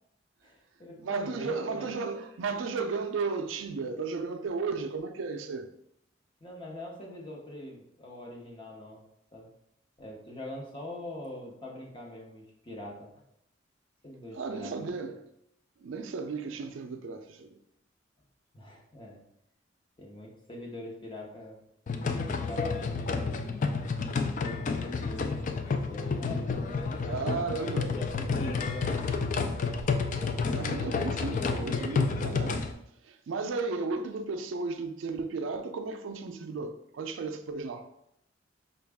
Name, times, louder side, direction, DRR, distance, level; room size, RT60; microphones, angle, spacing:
voice 1, 0.4-1.9 6.4-9.0 9.3-9.5 10.0-13.1 14.0-14.7 18.5-19.2 20.0-21.6 22.1-23.4 24.4-27.2 27.9-29.5 30.6-30.7, left 1 dB, 25° left, 0.8 m, -43 dB
voice 2, 1.0-5.7 14.3-15.2 15.8-17.6 27.0-28.0 30.5-32.7 33.0-37.8, right 4 dB, 80° right, 0.4 m, -34 dB
sound 1, 21.9-32.7, left 4 dB, 40° left, 0.3 m, -30 dB
5.1 x 2.3 x 3.4 m
head